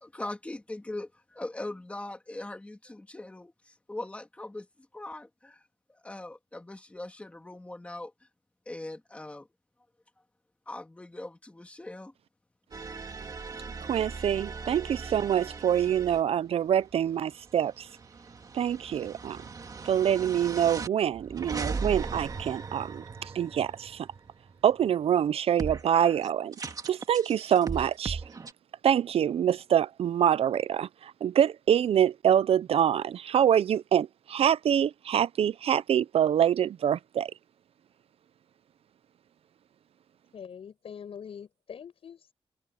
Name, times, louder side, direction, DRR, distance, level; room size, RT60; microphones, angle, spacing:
voice 1, 0.0-1.1 1.3-3.5 3.9-4.7 4.9-5.6 6.0-8.1 8.7-9.5 10.7-12.1 13.6-13.7, left 2 dB, 15° left, 1.9 m, -40 dB
sound 1, 12.7-16.2 16.7-24.9 25.6-28.5, right 4 dB, 40° right, 2.3 m, -38 dB
voice 2, 13.9-17.9 18.5-19.4 19.8-23.0 23.3-24.1 24.6-26.5 26.8-28.2 28.8-37.3, right 9 dB, 85° right, 0.5 m, -25 dB
voice 3, 40.3-42.3, left 7 dB, 80° left, 6.2 m, -44 dB
wide cardioid pair, 160°, 10 cm